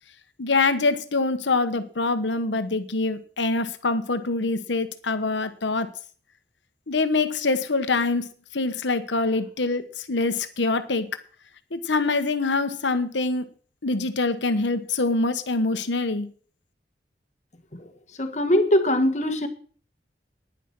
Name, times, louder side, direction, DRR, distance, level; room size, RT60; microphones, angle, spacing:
voice 1, 0.4-5.9 6.9-11.1 11.7-13.5 13.8-16.3, left 3 dB, 90° left, 10 dB, 1.1 m, -25 dB
voice 2, 18.2-19.5, left 1 dB, 40° left, 7 dB, 1.7 m, -21 dB
10.5 x 10.0 x 6.1 m, 0.44 s
head